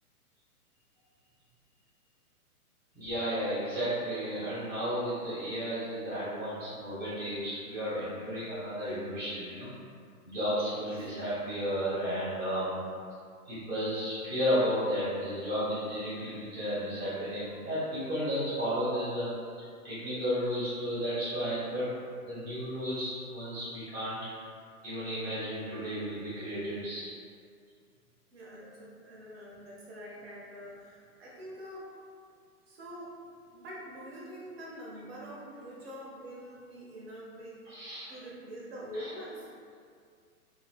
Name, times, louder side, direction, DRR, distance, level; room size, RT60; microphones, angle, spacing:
voice 1, 2.9-9.7 10.2-12.8 13.5-19.3 19.8-21.9 22.2-24.2 24.8-27.1 37.7-38.1 38.9-39.1, equal, 5° left, -15 dB, 0.5 m, -33 dB
voice 2, 28.3-31.9 32.7-37.6 38.1-39.5, equal, 45° right, -6 dB, 0.5 m, -45 dB
2.3 x 2.2 x 2.3 m, 2.2 s
hypercardioid pair, 140°, 46 cm